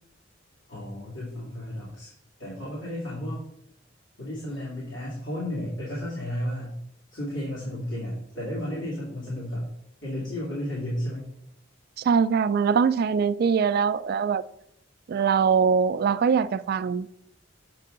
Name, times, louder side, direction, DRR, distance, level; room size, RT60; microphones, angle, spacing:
voice 1, 0.7-2.1 2.4-3.4 4.2-6.7 7.1-9.7 10.0-11.3, left 1 dB, 90° left, 2.4 m, -33 dB
voice 2, 12.0-14.4 15.1-17.1, right 6 dB, 55° right, 0.3 m, -22 dB
7.6 x 5.3 x 3.8 m
head